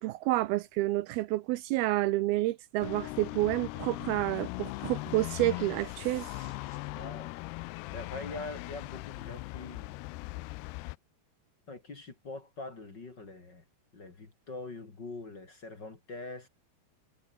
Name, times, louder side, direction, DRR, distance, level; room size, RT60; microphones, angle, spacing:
voice 1, 0.0-6.5, right 17 dB, 80° right, 2.4 m, -29 dB
sound 1, 2.8-11.0, left 22 dB, 85° left, 2.6 m, -39 dB
voice 2, 6.9-7.3 7.9-9.9 11.7-13.6 13.9-16.5, left 2 dB, 30° left, 3.0 m, -43 dB
omnidirectional pair, 4.7 m